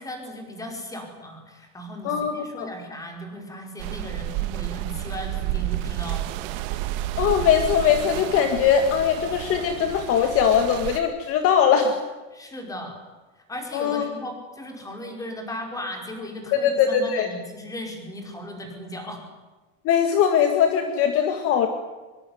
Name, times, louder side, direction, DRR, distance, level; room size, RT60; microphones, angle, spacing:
voice 1, 0.0-6.3 6.6-6.7 12.3-13.0 13.5-19.2, equal, 10° left, 3 dB, 4.9 m, -36 dB
voice 2, 2.0-2.7 7.2-11.9 13.7-14.0 16.5-17.3 19.8-21.7, left 8 dB, 40° left, 6 dB, 2.0 m, -21 dB
sound 1, 3.8-11.0, right 14 dB, 75° right, 1.9 m, -31 dB
24.5 x 23.0 x 9.6 m, 1.2 s
cardioid pair, 180°, 35 cm